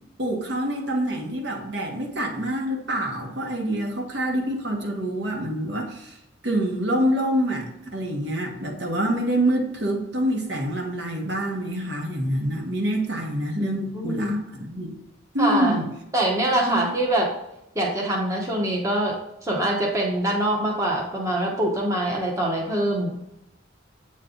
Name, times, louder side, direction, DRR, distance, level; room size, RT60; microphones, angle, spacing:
voice 1, 0.2-6.2 6.4-14.9 15.3-15.9 16.7-16.8, right 1 dB, 60° right, 0 dB, 1.2 m, -26 dB
voice 2, 13.5-14.4 15.4-15.8 16.1-17.3 17.7-19.1 19.4-23.1, right 1 dB, 15° right, -2 dB, 1.0 m, -24 dB
8.0 x 3.2 x 3.8 m, 0.85 s
head